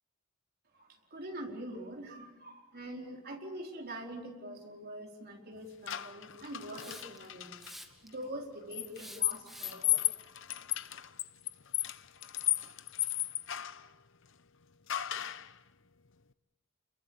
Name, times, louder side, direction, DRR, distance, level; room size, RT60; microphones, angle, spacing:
voice 1, 0.7-7.6 8.0-10.0, right 1 dB, 50° right, 1 dB, 4.6 m, -44 dB
sound 1, 5.9-7.7 8.7-13.9 14.9-15.5, left 14 dB, 65° left, 0.8 m, -34 dB
Hiss, 6.7-7.3 7.6-8.2 8.9-9.9, equal, ahead, 2.2 m, -49 dB
29.0 x 22.0 x 7.2 m, 1.0 s
head